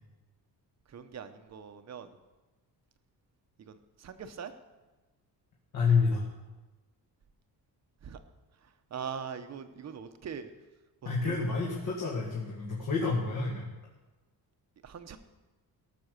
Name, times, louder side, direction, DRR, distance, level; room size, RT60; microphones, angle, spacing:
voice 1, 0.9-2.2 3.6-4.5 8.0-8.2 8.9-10.5 11.2-11.4 14.8-15.2, right 7 dB, 40° right, 9 dB, 0.9 m, -41 dB
voice 2, 5.7-6.2 11.0-13.6, left 4 dB, 50° left, -3 dB, 2.2 m, -28 dB
17.5 x 6.8 x 6.7 m, 1.2 s
cardioid pair, 160°, 40 cm